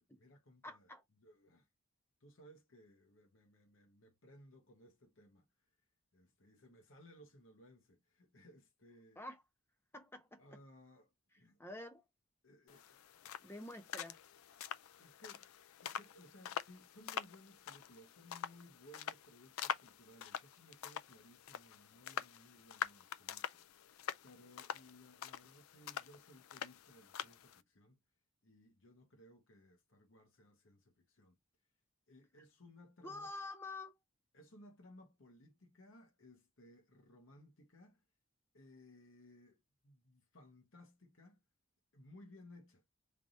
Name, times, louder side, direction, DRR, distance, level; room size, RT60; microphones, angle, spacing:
voice 1, 0.0-0.9 1.2-1.7 2.2-5.5 6.1-9.2 10.4-11.6 12.4-13.5 15.0-15.5 15.8-23.6 24.2-28.0 28.4-31.4 32.1-33.3 34.3-38.0 38.5-41.4 41.9-42.8, left 1 dB, 70° left, 1.1 m, -61 dB
voice 2, 0.6-1.0 9.2-9.4 9.9-10.6 11.6-12.1 13.4-14.2 33.0-33.9, left 2 dB, 10° left, 0.6 m, -48 dB
sound 1, 12.7-27.6, left 8 dB, 85° left, 0.4 m, -46 dB
3.4 x 2.6 x 4.1 m
head